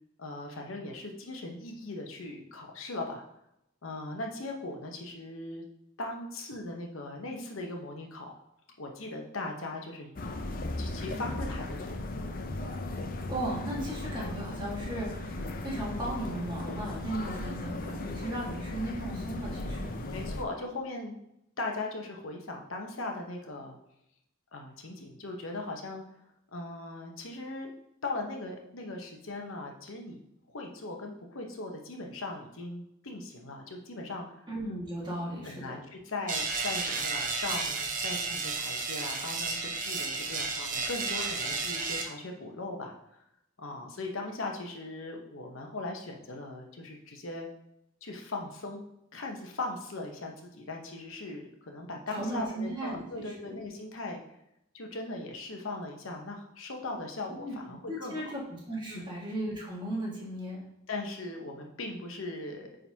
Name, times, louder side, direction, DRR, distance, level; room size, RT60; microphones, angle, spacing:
voice 1, 0.2-3.2 3.8-5.6 6.0-8.4 8.8-10.1 10.8-12.0 20.1-21.2 21.6-23.8 24.5-26.0 26.5-27.7 28.0-30.2 30.5-34.5 35.4-43.2 43.6-47.5 48.0-48.8 49.1-54.2 54.7-58.3 58.9-59.1 60.9-62.7, left 2 dB, 80° left, 2 dB, 1.0 m, -39 dB
sound 1, 10.2-20.4, left 2 dB, 45° left, 0.6 m, -36 dB
voice 2, 13.3-19.9 34.5-35.8 52.1-53.6 57.4-57.6 57.9-58.4 58.7-60.7, right 1 dB, 20° right, -4 dB, 1.7 m, -36 dB
sound 2, 36.3-42.0, right 4 dB, 40° right, 0.8 m, -32 dB
9.0 x 3.8 x 2.8 m, 0.80 s
head